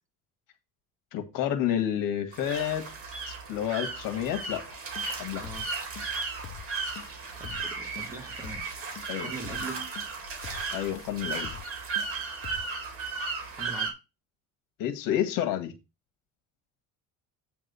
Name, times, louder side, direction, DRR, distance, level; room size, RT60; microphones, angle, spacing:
voice 1, 1.1-2.9 3.3-4.6 5.2-5.4 9.1-9.3 10.7-11.5 14.8-15.7, left 10 dB, 80° left, 1.7 m, -29 dB
sound 1, 2.3-13.9, right 4 dB, 40° right, 2.7 m, -35 dB
sound 2, 4.9-5.1 5.4-5.7 5.9-6.1 6.4-6.7 6.9-7.1 7.4-7.7 7.9-8.1 8.4-8.7 8.9-9.1 9.4-9.7 9.9-10.1 10.4-10.7 10.9-11.1 11.4-11.7 11.9-12.1 12.4-12.7, left 10 dB, 40° left, 0.7 m, -43 dB
voice 2, 7.3-8.6 9.2-9.9 13.6-13.9, right 3 dB, 10° right, 2.0 m, -41 dB
8.7 x 3.6 x 6.8 m
cardioid pair, 120°, 33 cm